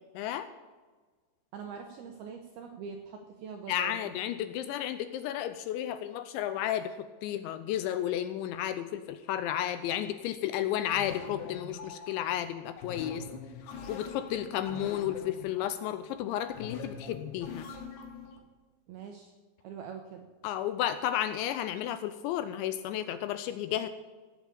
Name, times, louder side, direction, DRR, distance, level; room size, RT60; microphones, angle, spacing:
voice 1, 0.2-0.5 3.7-6.9 7.2-13.3 13.9-17.7 20.4-23.9, left 11 dB, 85° left, 11 dB, 2.7 m, -32 dB
voice 2, 1.5-4.1 18.9-19.3 19.6-20.3, right 6 dB, 75° right, 3 dB, 2.2 m, -43 dB
sound 1, 10.9-18.4, left 5 dB, 65° left, 3.5 m, -44 dB
17.0 x 7.1 x 8.5 m, 1.4 s
omnidirectional pair, 5.7 m